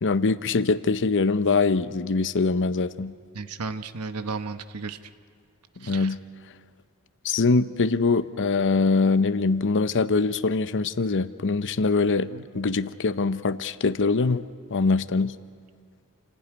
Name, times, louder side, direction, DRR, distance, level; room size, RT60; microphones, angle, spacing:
voice 1, 0.0-3.1 5.8-6.2 7.2-12.3 12.5-14.5 14.7-15.3, left 4 dB, 55° left, 14 dB, 0.7 m, -23 dB
voice 2, 3.3-5.0 5.8-6.1 12.3-12.4, right 4 dB, 90° right, 10 dB, 1.0 m, -34 dB
29.0 x 17.0 x 9.6 m, 2.1 s
head